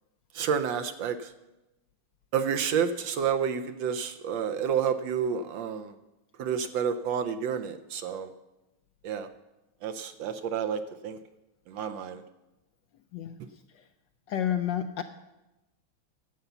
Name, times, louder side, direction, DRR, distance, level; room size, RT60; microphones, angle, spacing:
voice 1, 0.3-1.3 2.3-5.9 6.4-8.3 9.0-9.3 9.8-11.2 11.7-12.2, right 7 dB, 75° right, 10 dB, 1.2 m, -30 dB
voice 2, 13.1-13.9 14.3-15.0, left 10 dB, 75° left, 8 dB, 1.0 m, -31 dB
11.5 x 8.0 x 6.8 m, 0.99 s
omnidirectional pair, 2.4 m